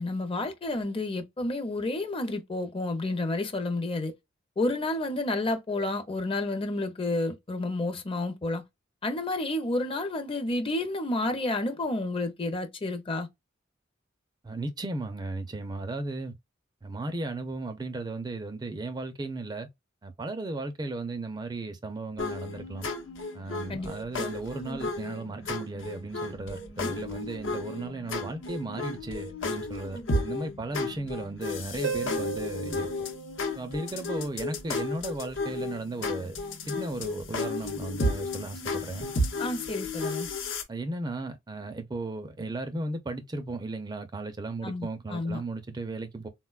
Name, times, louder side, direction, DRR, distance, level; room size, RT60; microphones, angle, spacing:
voice 1, 0.0-4.1 4.6-8.6 9.0-13.3 23.7-23.9 39.4-40.3 44.6-45.4, left 2 dB, 30° left, 0.5 m, -30 dB
voice 2, 14.4-16.3 16.8-19.7 20.0-22.9 23.3-32.9 33.6-36.4 36.7-39.1 40.7-46.3, right 2 dB, 20° right, 0.4 m, -35 dB
sound 1, 22.2-40.6, left 2 dB, 75° left, 0.8 m, -33 dB
Harp, 31.8-34.3 37.8-37.9, right 6 dB, 90° right, 0.5 m, -36 dB
3.9 x 2.1 x 2.3 m
head